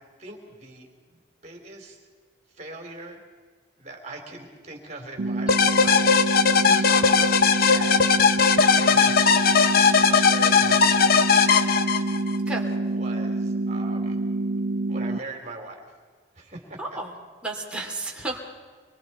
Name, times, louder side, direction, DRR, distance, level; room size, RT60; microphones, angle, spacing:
voice 1, 0.0-2.0 2.5-3.2 3.8-6.2 6.4-6.6 6.9-8.0 8.7-9.6 10.0-11.9 12.8-14.2 14.9-15.9 16.3-16.8, right 2 dB, 35° right, 2 dB, 3.7 m, -41 dB
sound 1, 5.2-15.2, right 2 dB, 55° right, 0.5 m, -27 dB
sound 2, 5.5-12.4, left 6 dB, 50° left, 0.9 m, -19 dB
voice 2, 16.8-17.1 17.4-18.4, right 2 dB, 5° right, -2 dB, 3.1 m, -32 dB
25.0 x 24.0 x 4.5 m, 1.5 s
head